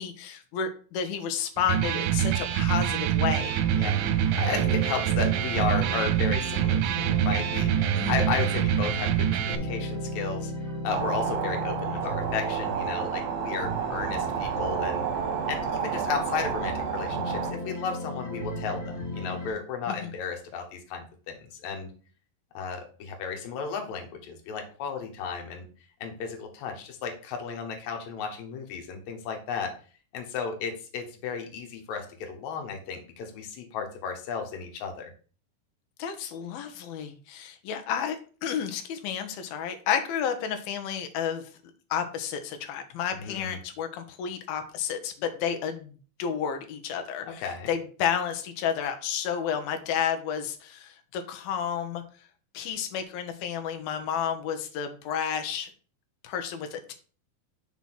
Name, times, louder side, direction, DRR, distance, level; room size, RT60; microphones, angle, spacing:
voice 1, 0.0-3.5 7.9-8.2 19.9-20.0 36.0-41.4 41.9-45.9 46.2-52.0 52.5-55.7 56.2-56.9, left 8 dB, 90° left, 6 dB, 2.7 m, -31 dB
Electric guitar, 1.6-9.6, right 10 dB, 80° right, 2.2 m, -25 dB
sound 1, 3.2-19.5, equal, 25° left, 1.8 m, -36 dB
voice 2, 4.2-10.5 10.8-15.0 15.5-21.9 22.5-25.7 26.0-29.7 30.1-35.1 43.1-43.6 47.2-47.7, left 6 dB, 60° left, 3 dB, 2.3 m, -34 dB
sound 2, 10.9-17.5, right 8 dB, 65° right, 2.0 m, -31 dB
6.0 x 4.1 x 5.9 m, 0.39 s
omnidirectional pair, 4.2 m